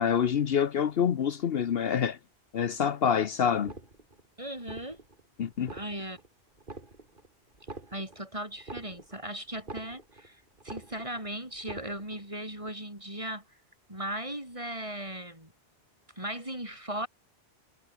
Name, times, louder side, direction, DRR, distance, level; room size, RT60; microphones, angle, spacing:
voice 1, 0.0-2.2 2.5-3.7 5.4-5.7, left 8 dB, 65° left, 1.0 m, -26 dB
sound 1, 3.7-4.3 4.6-5.2 5.5-6.3 6.6-7.3 7.5-10.3 10.6-11.3 11.5-12.3 12.6-12.7, right 2 dB, 50° right, 3.3 m, -46 dB
voice 2, 4.4-5.0 5.7-6.2 7.9-13.4 13.9-15.5 16.2-17.1, right 1 dB, 30° right, 5.9 m, -37 dB
omnidirectional pair, 1.1 m